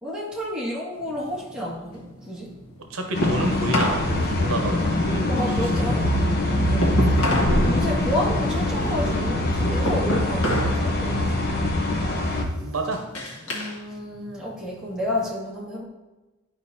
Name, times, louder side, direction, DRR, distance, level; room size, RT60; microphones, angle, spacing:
voice 1, 0.0-2.6 5.2-6.3 6.7-7.0 7.6-11.5 13.4-15.8, left 1 dB, 5° right, -7 dB, 1.9 m, -30 dB
sound 1, 1.0-4.1 4.4-7.6 8.0-10.8 11.2-11.6 12.1-13.8 14.1-15.3, left 1 dB, 75° left, 1.4 m, -28 dB
voice 2, 2.9-5.7 6.8-7.0 12.5-13.1, right 2 dB, 75° right, 4 dB, 0.9 m, -29 dB
sound 2, 3.1-12.4, left 1 dB, 50° left, 1.0 m, -23 dB
11.0 x 5.1 x 2.8 m, 1.1 s
head